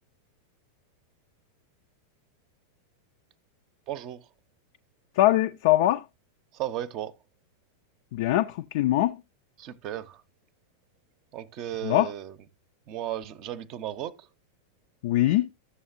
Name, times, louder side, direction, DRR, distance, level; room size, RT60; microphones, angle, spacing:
voice 1, 3.9-4.3 6.5-7.1 9.6-10.2 11.3-12.4 12.9-14.3, right 12 dB, 40° right, 0.7 m, -35 dB
voice 2, 5.2-6.0 8.1-9.2 11.8-12.1 15.0-15.5, left 15 dB, 50° left, 0.4 m, -22 dB
12.5 x 7.1 x 2.5 m
figure-of-eight pair, 90°, 0 cm